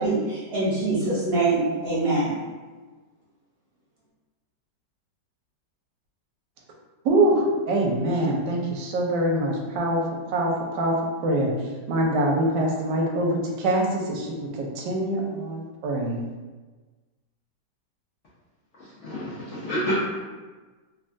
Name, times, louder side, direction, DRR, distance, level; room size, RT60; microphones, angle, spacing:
voice 1, 0.0-2.3, right 2 dB, 50° right, -9 dB, 0.8 m, -24 dB
voice 2, 7.0-10.0 10.3-10.9 11.2-11.5 11.9-16.3, right 1 dB, 80° right, -1 dB, 1.2 m, -24 dB
voice 3, 18.8-20.0, equal, 65° left, -9 dB, 0.7 m, -28 dB
3.2 x 2.2 x 2.5 m, 1.3 s
omnidirectional pair, 1.9 m